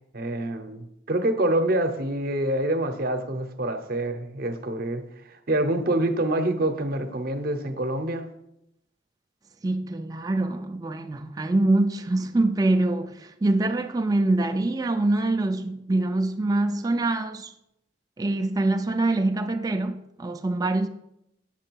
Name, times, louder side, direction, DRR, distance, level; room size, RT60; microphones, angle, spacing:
voice 1, 0.1-8.2, right 1 dB, 50° right, 0.7 m, -26 dB
voice 2, 9.6-17.5 18.2-20.9, right 2 dB, 20° right, 0.3 m, -24 dB
7.5 x 6.0 x 4.5 m
head